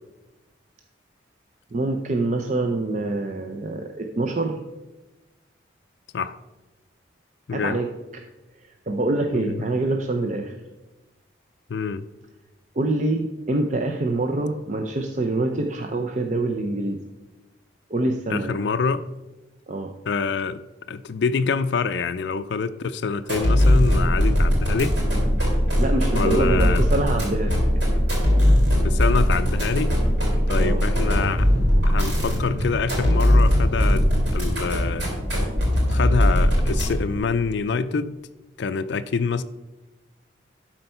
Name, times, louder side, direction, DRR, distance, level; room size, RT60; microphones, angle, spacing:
voice 1, 1.7-4.7 7.5-8.2 8.6-10.6 12.8-17.0 17.9-18.6 19.7-19.9 25.7-27.6 30.6-30.9, right 2 dB, 40° right, 4 dB, 0.5 m, -25 dB
voice 2, 7.5-7.8 9.3-9.6 11.7-12.0 18.3-19.0 20.1-20.6 20.9-25.0 26.1-26.8 28.8-29.9 30.5-31.5 31.9-34.1 34.3-35.1 35.9-38.1 38.6-39.4, left 5 dB, 65° left, 10 dB, 0.4 m, -26 dB
sound 1, 23.2-37.2, equal, 70° right, 3.6 m, -20 dB
12.0 x 4.4 x 5.5 m, 1.1 s
head